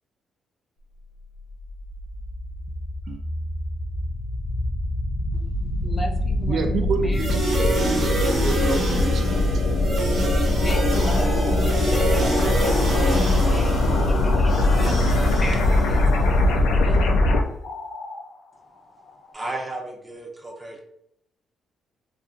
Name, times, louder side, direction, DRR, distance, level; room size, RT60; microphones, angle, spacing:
sound 1, 1.5-17.4, left 2 dB, 90° left, 0.4 m, -22 dB
voice 1, 5.8-7.4 10.4-17.3, left 1 dB, 20° left, 3 dB, 0.4 m, -36 dB
voice 2, 6.5-9.4, right 5 dB, 60° right, 5 dB, 0.3 m, -29 dB
sound 2, 7.1-16.3, right 1 dB, 45° right, 0.9 m, -27 dB
sound 3, 10.5-19.3, left 3 dB, 70° left, 0.8 m, -39 dB
voice 3, 19.3-20.8, right 2 dB, 15° right, 1 dB, 0.7 m, -33 dB
2.7 x 2.5 x 2.5 m, 0.74 s
cardioid pair, 90°, 0 cm